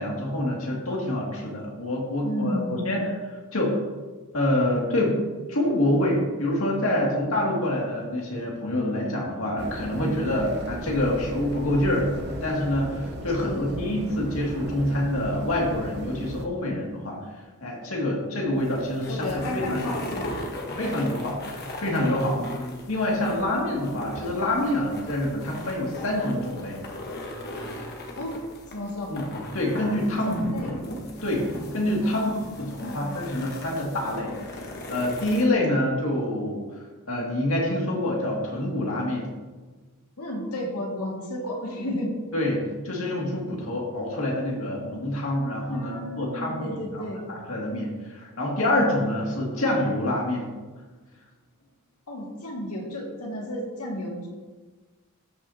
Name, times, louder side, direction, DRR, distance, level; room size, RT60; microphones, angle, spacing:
voice 1, 0.0-3.0 3.5-3.8 4.3-5.2 5.5-17.2 17.6-19.8 20.8-21.4 21.8-22.4 22.9-26.8 29.1-29.3 29.5-30.5 30.8-34.4 34.6-36.6 37.1-39.3 42.3-50.5, left 1 dB, 65° left, -2 dB, 2.3 m, -26 dB
voice 2, 2.2-3.1 13.4-13.9 19.1-20.4 22.4-22.8 28.2-28.4 28.7-29.1 30.2-30.8 32.0-33.3 40.2-42.1 45.7-47.3 52.1-54.3, left 1 dB, 85° left, -1 dB, 2.1 m, -33 dB
sound 1, 9.6-16.5, right 1 dB, 50° right, 0.9 m, -36 dB
sound 2, 18.4-35.4, left 1 dB, 45° left, 1.3 m, -38 dB
14.0 x 6.2 x 2.8 m, 1.3 s
head